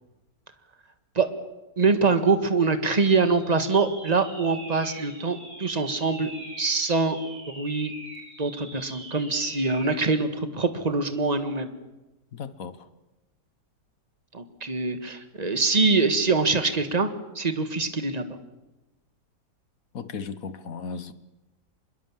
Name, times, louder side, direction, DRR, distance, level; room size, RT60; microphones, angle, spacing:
voice 1, 1.8-6.3 6.6-7.2 7.5-7.9 8.4-11.7 14.3-17.1 17.4-18.2, right 4 dB, 25° right, 1.8 m, -24 dB
sound 1, 3.1-10.1, right 1 dB, 55° right, 5.7 m, -43 dB
voice 2, 12.3-12.9 19.9-21.1, left 5 dB, 55° left, 1.5 m, -36 dB
25.0 x 22.5 x 7.4 m
omnidirectional pair, 1.9 m